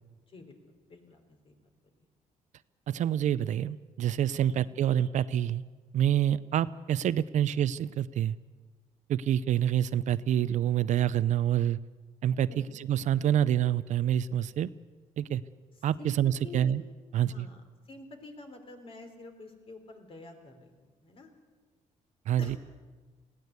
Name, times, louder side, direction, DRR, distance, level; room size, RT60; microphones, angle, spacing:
voice 1, 0.3-0.6 0.9-1.6 4.4-4.6 12.5-12.7 15.7-16.7 17.1-21.3 22.4-22.6, left 3 dB, 45° left, 5 dB, 3.7 m, -49 dB
voice 2, 2.9-5.6 5.9-8.4 9.1-11.8 12.2-14.7 15.2-15.4 15.8-16.8 17.1-17.5 22.3-22.6, right 10 dB, 65° right, 16 dB, 0.6 m, -27 dB
20.0 x 16.5 x 8.1 m, 1.4 s
cardioid pair, 110°, 13 cm